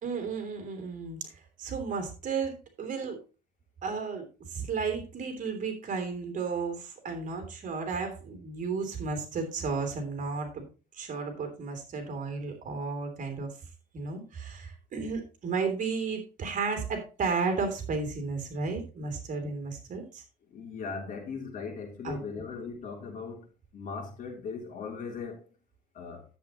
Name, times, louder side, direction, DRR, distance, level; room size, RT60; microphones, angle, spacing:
voice 1, 0.0-1.3 1.6-3.2 3.8-10.7 10.9-13.5 13.9-20.2 22.0-22.2, right 4 dB, 50° right, 3.0 m, -33 dB
voice 2, 20.5-23.5 23.7-25.4 25.9-26.3, left 5 dB, 50° left, 3.2 m, -38 dB
10.5 x 8.2 x 3.0 m
cardioid pair, 110°, 17 cm